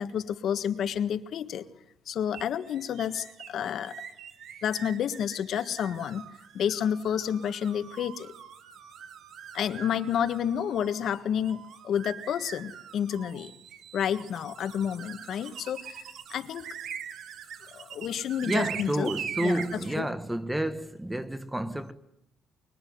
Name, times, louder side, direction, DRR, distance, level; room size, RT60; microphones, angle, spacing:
voice 1, 0.0-1.7 2.1-4.0 4.6-6.3 6.5-8.3 9.5-13.5 13.9-16.0 16.3-16.7 17.7-19.1 19.4-20.1, left 9 dB, 60° left, 1.6 m, -30 dB
sound 1, 2.3-20.0, right 8 dB, 60° right, 2.1 m, -43 dB
voice 2, 18.4-21.9, right 1 dB, 5° right, 1.3 m, -30 dB
24.5 x 23.5 x 9.5 m
cardioid pair, 145°, 0 cm